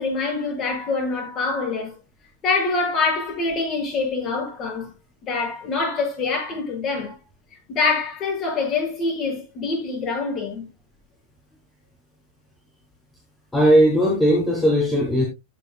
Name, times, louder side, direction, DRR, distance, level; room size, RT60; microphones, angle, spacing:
voice 1, 0.0-1.9 2.4-4.9 5.2-7.2 7.7-10.7, left 4 dB, 35° left, 6.9 m, -25 dB
voice 2, 13.5-15.3, equal, 10° left, 3.6 m, -17 dB
16.5 x 7.1 x 2.3 m
figure-of-eight pair, 90°, 0 cm